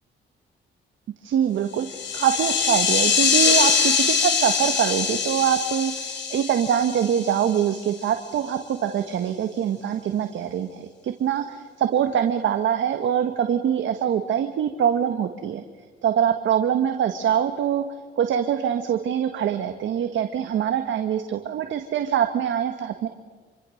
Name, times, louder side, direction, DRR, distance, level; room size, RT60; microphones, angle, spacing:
voice 1, 1.2-15.6 16.0-17.8 18.2-23.1, right 9 dB, 70° right, 7 dB, 1.5 m, -24 dB
sound 1, 1.8-7.8, left 6 dB, 65° left, 4.6 m, -23 dB
27.5 x 24.5 x 6.5 m, 1.4 s
cardioid pair, 90°, 20 cm